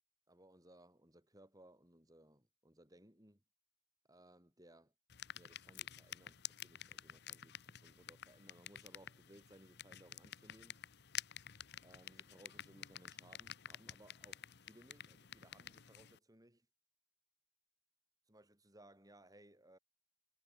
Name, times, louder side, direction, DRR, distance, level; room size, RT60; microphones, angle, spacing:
voice 1, 0.3-3.4 4.1-4.9 5.3-10.8 11.8-16.7 18.3-19.8, right 1 dB, 20° right, 5.3 m, -63 dB
sound 1, 5.1-16.2, left 11 dB, 55° left, 1.1 m, -51 dB
head